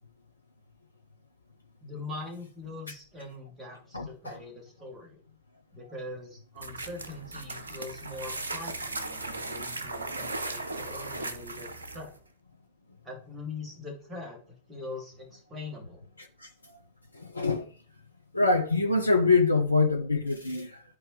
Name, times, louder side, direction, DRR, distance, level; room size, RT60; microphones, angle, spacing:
voice 1, 1.8-5.2 5.7-12.1 13.0-14.4 14.7-16.0, left 2 dB, 15° right, 2.5 m, -42 dB
voice 2, 3.9-4.4 16.4-16.5 17.1-17.7 18.3-20.8, left 3 dB, 85° left, 0.7 m, -25 dB
sound 1, 6.6-12.2, right 2 dB, 75° right, 0.7 m, -37 dB
12.5 x 4.4 x 3.2 m
figure-of-eight pair, 90°, 0 cm